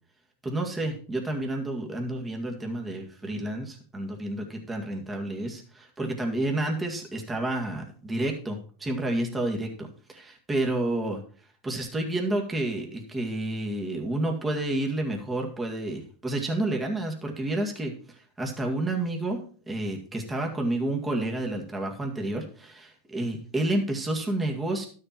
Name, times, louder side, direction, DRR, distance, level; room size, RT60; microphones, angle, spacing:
voice 1, 0.4-11.2 11.6-19.4 19.7-24.9, right 1 dB, 15° right, 1 dB, 2.1 m, -30 dB
12.0 x 6.7 x 4.5 m, 0.41 s
supercardioid pair, 130°, 0 cm